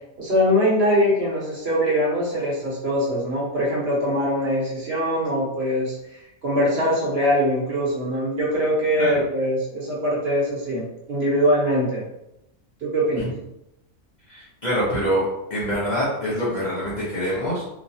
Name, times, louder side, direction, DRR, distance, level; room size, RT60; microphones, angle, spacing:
voice 1, 0.2-6.0 6.4-12.0 12.8-13.3, equal, 55° right, -5 dB, 1.1 m, -22 dB
voice 2, 14.3-17.6, equal, 40° left, -8 dB, 0.8 m, -25 dB
3.0 x 2.2 x 2.7 m, 0.84 s
omnidirectional pair, 1.4 m